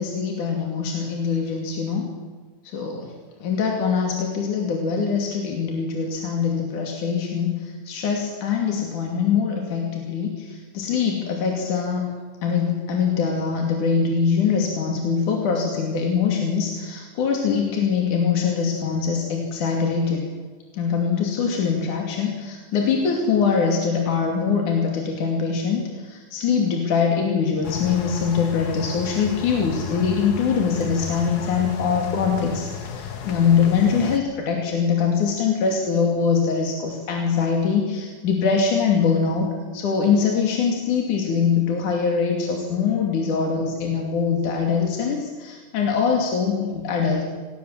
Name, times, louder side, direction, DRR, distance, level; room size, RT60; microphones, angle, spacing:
voice 1, 0.0-2.1 2.7-3.1 3.4-12.1 12.4-20.3 20.7-39.5 39.7-47.2, left 6 dB, 70° left, 1 dB, 4.1 m, -23 dB
sound 1, 27.6-34.2, left 7 dB, 85° left, 0.8 m, -34 dB
26.0 x 20.0 x 7.4 m, 1.4 s
omnidirectional pair, 3.7 m